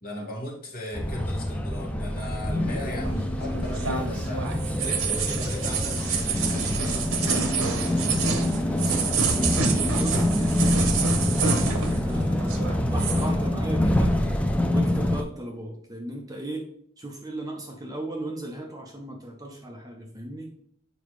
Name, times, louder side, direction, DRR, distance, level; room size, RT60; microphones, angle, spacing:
voice 1, 0.0-4.5 4.7-7.4, left 1 dB, 45° left, -3 dB, 2.0 m, -38 dB
sound 1, 0.9-15.2, left 1 dB, 5° left, 0.4 m, -26 dB
sound 2, 2.5-11.9 12.1-12.2, left 1 dB, 65° left, 2.2 m, -40 dB
sound 3, 3.0-12.1 12.4-13.3, right 5 dB, 85° right, 1.0 m, -28 dB
voice 2, 8.7-14.1 14.7-16.6 17.0-20.5, right 1 dB, 15° right, 1 dB, 0.8 m, -37 dB
7.0 x 5.1 x 3.2 m, 0.67 s
head